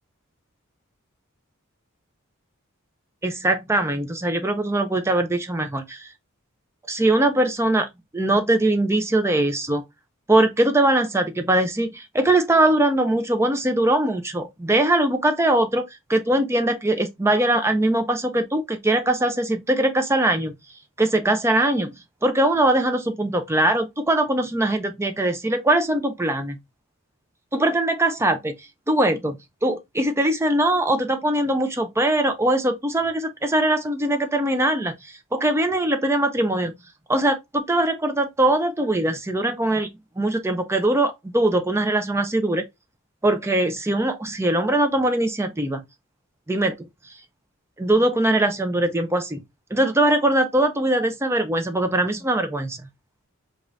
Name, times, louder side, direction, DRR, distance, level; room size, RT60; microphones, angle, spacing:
voice 1, 3.2-6.1 6.9-7.9 8.1-9.8 10.3-15.8 16.1-20.5 21.0-22.0 22.2-26.6 27.5-28.5 28.9-29.4 29.6-36.7 37.1-39.9 40.2-42.6 43.2-45.8 46.5-46.8 47.8-49.4 49.7-52.8, right 1 dB, 10° right, 0.5 m, -21 dB
4.9 x 2.5 x 2.6 m
head